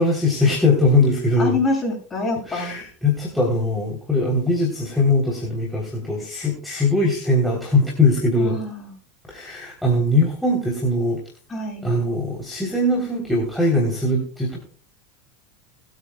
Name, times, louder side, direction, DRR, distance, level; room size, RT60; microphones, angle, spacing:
voice 1, 0.0-1.6 2.5-8.6 9.3-11.2 11.8-14.6, left 2 dB, 5° left, -2 dB, 3.5 m, -21 dB
voice 2, 1.4-2.8 8.4-8.9 11.5-11.9, left 2 dB, 20° left, 1 dB, 7.3 m, -26 dB
21.0 x 9.1 x 2.3 m, 0.42 s
hypercardioid pair, 100°, 0 cm